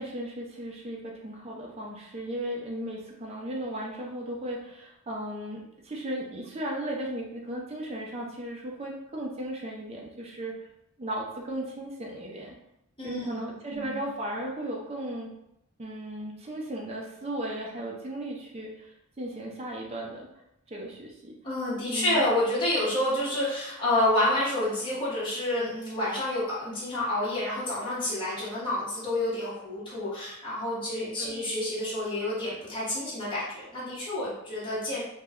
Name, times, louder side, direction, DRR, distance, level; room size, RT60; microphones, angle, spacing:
voice 1, 0.0-10.6 11.0-12.5 13.0-15.3 15.8-20.3 20.7-21.4 21.9-22.3 31.2-31.4, right 1 dB, 30° right, -2 dB, 0.4 m, -36 dB
voice 2, 13.0-13.4 13.7-14.0 21.4-35.0, left 1 dB, 25° left, -10 dB, 0.9 m, -29 dB
2.3 x 2.1 x 3.5 m, 0.82 s
head